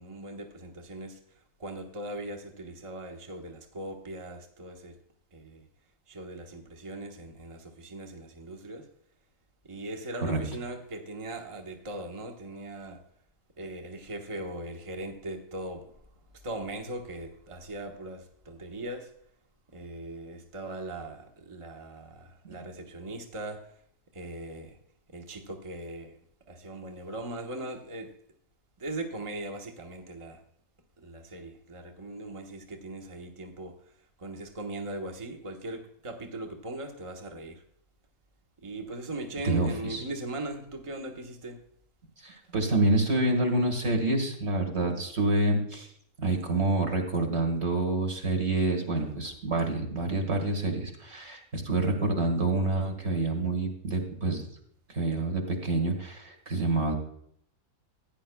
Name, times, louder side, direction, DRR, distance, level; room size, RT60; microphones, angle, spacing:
voice 1, 0.0-5.0 5.3-5.7 6.1-8.9 9.6-13.0 13.6-19.1 19.7-23.8 24.1-24.8 25.1-26.2 26.5-28.1 28.8-30.4 31.0-37.6 38.6-41.6 49.2-49.4, right 1 dB, 25° right, 3 dB, 1.1 m, -40 dB
voice 2, 39.4-40.0 42.2-45.9 46.2-54.4 54.9-56.9, right 2 dB, 45° right, 3 dB, 2.1 m, -27 dB
16.0 x 9.8 x 2.3 m, 0.69 s
omnidirectional pair, 1.6 m